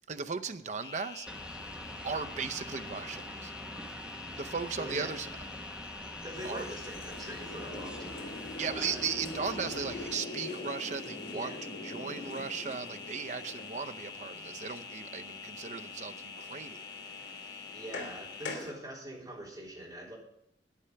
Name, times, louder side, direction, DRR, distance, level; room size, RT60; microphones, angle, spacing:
voice 1, 0.1-1.7 2.0-3.5 4.3-5.3 6.4-6.7 8.6-16.9 17.2-17.3, right 5 dB, 45° right, 0.6 m, -37 dB
sound 1, 0.8-18.6, left 5 dB, 25° left, 0.5 m, -46 dB
sound 2, 1.3-10.2, equal, 5° right, 0.9 m, -45 dB
voice 2, 4.8-5.2 6.2-9.0 11.3-11.5 17.7-20.2, right 1 dB, 25° right, 3.5 m, -43 dB
sound 3, 6.3-18.7, left 2 dB, 80° left, 2.7 m, -44 dB
9.7 x 8.5 x 5.6 m
head